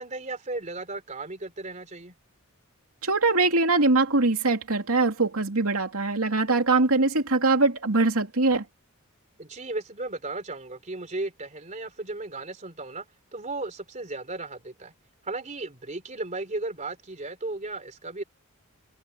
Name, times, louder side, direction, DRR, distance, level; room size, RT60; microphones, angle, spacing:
voice 1, 0.0-2.1 9.4-13.1 13.3-14.9 15.2-18.2, right 2 dB, 35° right, 3.3 m, -35 dB
voice 2, 3.0-8.6, right 3 dB, 75° right, 2.9 m, -22 dB
head